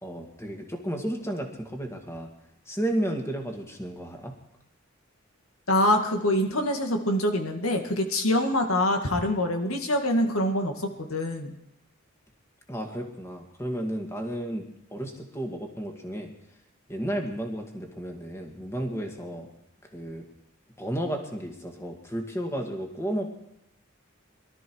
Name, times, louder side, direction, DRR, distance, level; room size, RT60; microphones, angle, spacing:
voice 1, 0.0-2.3 2.7-4.3 12.7-16.3 16.9-19.5 19.9-20.3 20.8-23.4, right 1 dB, 15° left, 3 dB, 2.0 m, -33 dB
voice 2, 5.7-11.5, left 1 dB, 90° left, 4 dB, 2.1 m, -25 dB
22.5 x 13.0 x 4.7 m, 0.86 s
head